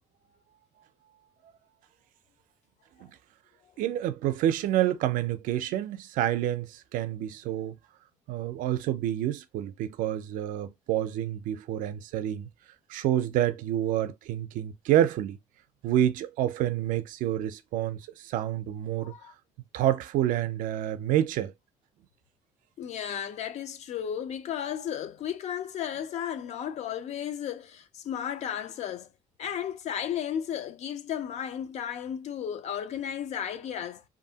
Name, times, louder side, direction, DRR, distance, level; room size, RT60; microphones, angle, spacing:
voice 1, 3.8-7.8 8.3-12.5 12.9-15.4 15.8-19.1 19.7-21.5, right 12 dB, 80° right, 0.4 m, -28 dB
voice 2, 19.0-19.3 22.8-29.1 29.4-34.0, left 9 dB, 55° left, 0.4 m, -34 dB
2.7 x 2.5 x 2.7 m
cardioid pair, 130°, 14 cm